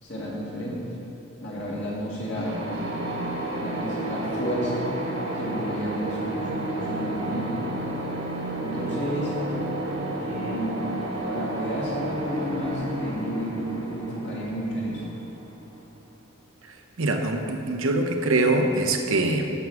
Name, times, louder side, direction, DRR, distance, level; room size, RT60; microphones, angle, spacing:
voice 1, 0.0-0.8 1.4-3.0 3.6-4.9 5.3-6.4 6.8-7.6 8.6-9.3 10.2-10.8 11.3-15.0, equal, 55° left, -6 dB, 2.1 m, -31 dB
sound 1, 2.3-16.0, right 1 dB, 60° right, 1.4 m, -31 dB
voice 2, 17.0-19.5, right 2 dB, 80° right, 4 dB, 0.8 m, -23 dB
12.5 x 6.3 x 3.5 m, 2.8 s
head